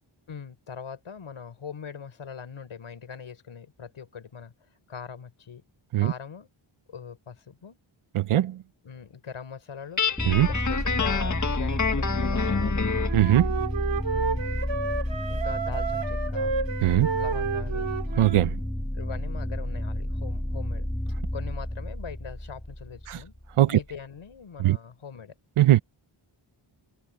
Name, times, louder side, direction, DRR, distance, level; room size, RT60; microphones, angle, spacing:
voice 1, 0.3-4.5 4.9-5.6 6.0-6.5 6.9-7.8 8.8-10.0 10.4-12.9 14.1-14.6 15.3-16.5 17.1-17.9 18.9-20.9 21.3-23.3 23.6-25.3, left 6 dB, 75° left, 5.0 m, -41 dB
voice 2, 8.1-8.6 10.3-10.5 13.1-13.5 16.8-17.1 18.2-18.6 23.1-23.2 23.6-23.8 24.6-24.8 25.6-25.8, right 14 dB, 85° right, 0.7 m, -20 dB
Guitar, 10.0-13.2, left 6 dB, 35° left, 1.3 m, -28 dB
sound 1, 10.2-23.6, left 1 dB, 5° left, 1.7 m, -31 dB
Wind instrument woodwind instrument, 13.1-18.4, right 5 dB, 60° right, 2.8 m, -31 dB
wide cardioid pair, 145°, 49 cm